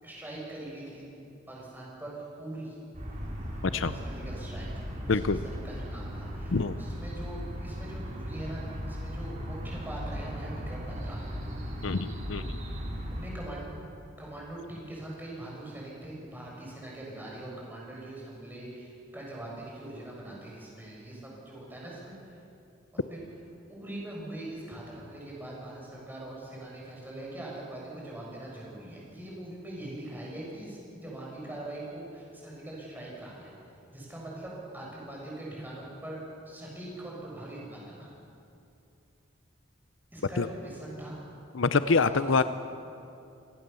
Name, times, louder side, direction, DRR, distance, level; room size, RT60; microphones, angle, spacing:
voice 1, 0.0-2.8 3.8-11.2 13.1-13.9 14.2-22.4 23.1-23.2 23.7-33.6 33.9-36.2 36.5-38.1 40.1-41.2 42.0-42.5, right 1 dB, 10° right, -4 dB, 7.3 m, -42 dB
sound 1, 2.9-13.3, equal, 40° right, 4.6 m, -37 dB
voice 2, 5.1-5.4 6.5-6.8 11.8-12.6 40.4-40.5 41.5-42.4, left 4 dB, 70° left, 12 dB, 0.6 m, -26 dB
26.5 x 18.5 x 7.0 m, 2.7 s
head